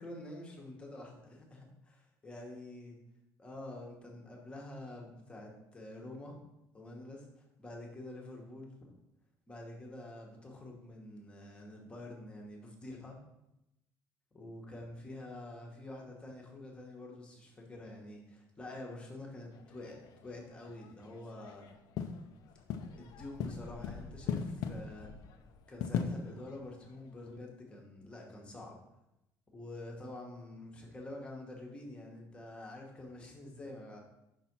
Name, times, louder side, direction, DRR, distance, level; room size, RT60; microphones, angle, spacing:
voice 1, 0.0-3.0 3.4-6.4 6.7-8.9 9.5-13.2 14.3-21.7 23.0-25.2 25.7-28.8 29.5-34.0, left 1 dB, 15° left, 0 dB, 1.1 m, -47 dB
sound 1, 19.5-27.4, left 7 dB, 60° left, 0.5 m, -41 dB
5.6 x 4.1 x 5.8 m, 0.88 s
cardioid pair, 170°, 7 cm